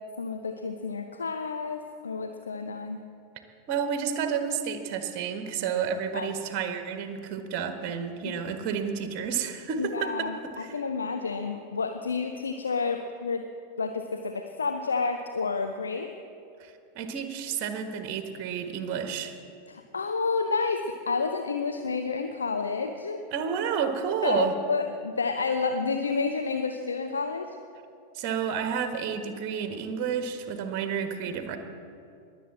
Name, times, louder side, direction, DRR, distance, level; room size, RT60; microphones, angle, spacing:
voice 1, 0.2-3.0 6.1-6.3 8.2-8.4 9.8-13.5 13.8-16.1 19.7-23.2 24.2-27.6, left 4 dB, 75° left, 6 dB, 0.7 m, -30 dB
voice 2, 3.7-10.3 16.6-19.3 23.3-24.5 28.1-31.6, right 7 dB, 40° right, 7 dB, 1.5 m, -30 dB
21.0 x 8.2 x 7.4 m, 2.6 s
figure-of-eight pair, 90°, 0 cm